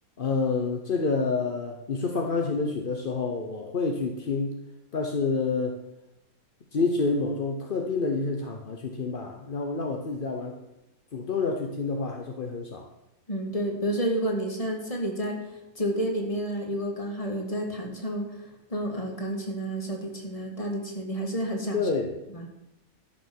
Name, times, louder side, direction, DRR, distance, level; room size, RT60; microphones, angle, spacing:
voice 1, 0.2-4.6 4.9-5.8 6.7-10.6 11.1-12.9 21.7-22.2, left 4 dB, 45° left, 3 dB, 0.7 m, -28 dB
voice 2, 13.3-15.4 15.8-18.3 18.7-21.9 22.3-22.5, right 1 dB, 20° left, 2 dB, 1.9 m, -30 dB
12.5 x 7.0 x 6.2 m, 0.92 s
omnidirectional pair, 1.9 m